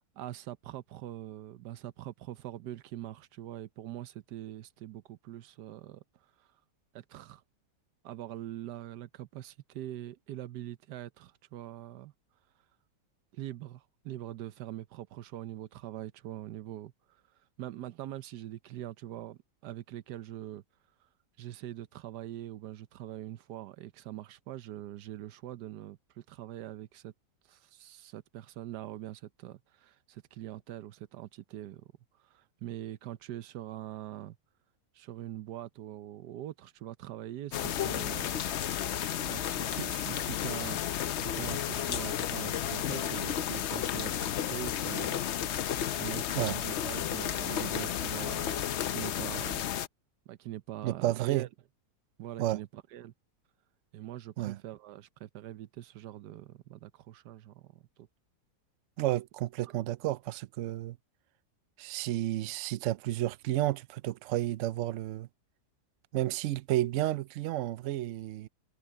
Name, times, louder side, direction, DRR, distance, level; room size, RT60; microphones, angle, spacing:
voice 1, 0.0-6.0 6.4-6.5 6.9-7.4 8.0-12.1 13.3-16.9 17.6-20.6 21.4-27.1 27.5-31.9 32.2-34.4 34.9-38.3 39.2-45.2 46.0-48.5 48.9-49.6 50.3-51.5 52.2-53.1 53.9-58.1 59.6-59.8, right 13 dB, 90° right, 1.3 m, -43 dB
sound 1, 37.5-49.9, left 10 dB, 60° left, 0.7 m, -32 dB
voice 2, 50.8-51.5 52.4-52.6 54.4-54.6 59.0-61.0 61.8-65.3 66.1-68.5, right 15 dB, 70° right, 0.7 m, -31 dB
omnidirectional pair, 1.7 m